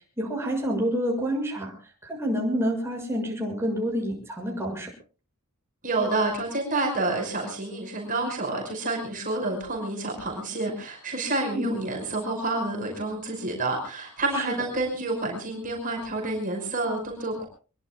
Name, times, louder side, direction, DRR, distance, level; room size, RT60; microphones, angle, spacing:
voice 1, 0.2-1.7 2.0-4.9 11.5-11.8 14.5-14.6, equal, 10° right, -1 dB, 6.8 m, -28 dB
voice 2, 5.8-17.5, right 2 dB, 40° right, 1 dB, 5.6 m, -29 dB
25.0 x 23.0 x 2.4 m, 0.37 s
head